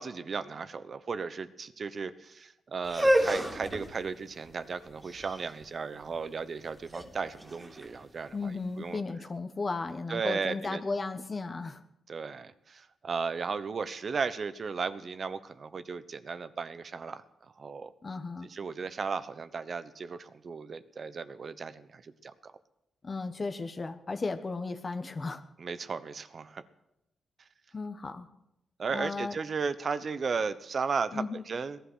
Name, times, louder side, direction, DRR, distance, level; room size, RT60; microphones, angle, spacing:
voice 1, 0.0-9.0 10.1-10.8 12.1-17.2 17.6-17.9 18.4-22.5 25.6-26.6 28.8-31.8, right 5 dB, 50° right, 13 dB, 1.0 m, -35 dB
sound 1, 2.8-8.8, equal, 15° right, 2.5 m, -31 dB
voice 2, 8.3-11.8 18.0-18.5 23.0-25.4 27.7-28.3 28.9-29.3 31.1-31.4, left 3 dB, 35° left, 7 dB, 1.2 m, -35 dB
18.0 x 11.5 x 6.4 m, 0.86 s
cardioid pair, 75°, 0 cm